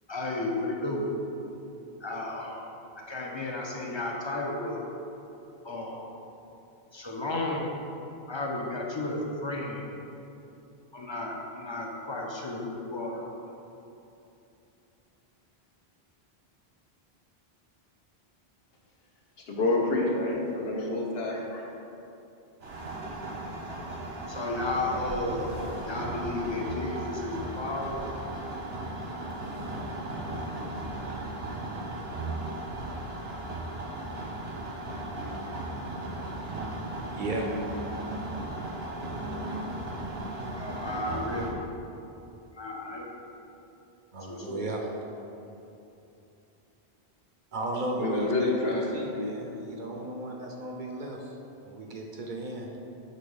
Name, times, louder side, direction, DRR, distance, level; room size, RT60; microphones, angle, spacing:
voice 1, 0.1-1.1 2.0-2.7 3.1-4.8 5.6-6.1 6.9-7.7 8.3-9.8 10.9-13.3 24.3-25.6 25.8-28.0 40.6-41.5 42.6-43.1 44.3-44.7, left 2 dB, 30° left, -1 dB, 0.6 m, -33 dB
voice 2, 19.5-21.7 48.0-49.3 49.9-50.0, left 2 dB, 70° left, -1 dB, 1.1 m, -28 dB
sound 1, 22.6-41.5, right 1 dB, 85° right, 1.3 m, -36 dB
voice 3, 37.2-37.5 44.1-44.9 47.5-51.2 51.6-52.7, right 1 dB, 55° right, 1 dB, 0.7 m, -35 dB
5.3 x 3.9 x 5.3 m, 2.9 s
omnidirectional pair, 1.1 m